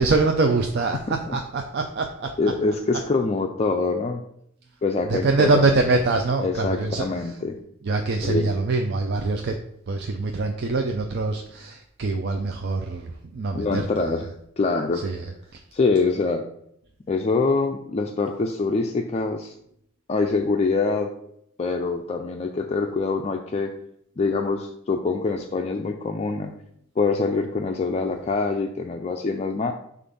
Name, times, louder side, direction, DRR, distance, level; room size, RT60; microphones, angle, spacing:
voice 1, 0.0-2.3 5.0-7.0 7.8-9.6 9.9-13.8 15.0-15.3 15.5-15.6, right 3 dB, 55° right, 3 dB, 0.5 m, -24 dB
voice 2, 2.4-4.2 4.8-5.8 6.4-7.6 8.2-8.5 13.5-14.3 14.6-15.1 15.7-16.5 17.1-19.5 20.1-21.1 21.6-23.7 24.2-26.5 27.0-29.7, left 3 dB, 30° left, 3 dB, 0.4 m, -24 dB
6.9 x 2.5 x 5.4 m, 0.72 s
head